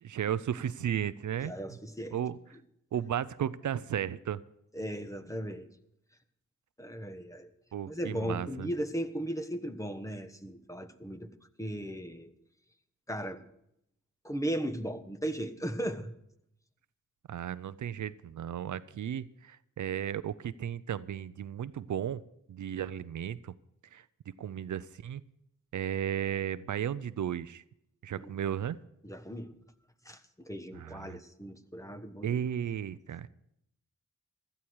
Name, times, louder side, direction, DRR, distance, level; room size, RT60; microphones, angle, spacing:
voice 1, 0.0-1.5 2.1-2.4 2.9-4.4 7.7-8.7 17.3-22.2 22.5-23.5 23.9-24.0 24.4-25.2 25.7-27.6 28.0-28.8 30.7-31.2 32.2-33.3, right 9 dB, 70° right, 15 dB, 0.6 m, -34 dB
voice 2, 1.4-2.2 4.7-5.7 6.8-7.5 7.9-11.3 11.6-12.3 13.1-13.4 14.2-16.1 28.2-28.3 29.0-29.5 30.0-32.4, right 1 dB, 10° left, 9 dB, 1.3 m, -37 dB
16.0 x 13.0 x 4.7 m, 0.77 s
cardioid pair, 70°, 31 cm